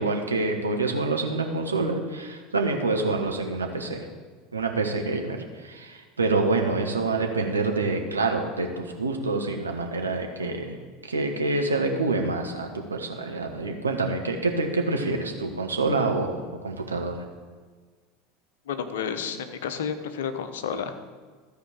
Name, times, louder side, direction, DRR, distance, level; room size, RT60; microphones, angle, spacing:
voice 1, 0.0-4.1 4.5-10.8 11.0-16.3 16.6-17.2, right 3 dB, 85° right, 3 dB, 1.2 m, -27 dB
voice 2, 18.7-21.0, left 7 dB, 70° left, 9 dB, 1.0 m, -31 dB
14.0 x 5.1 x 8.1 m, 1.5 s
figure-of-eight pair, 75°, 0 cm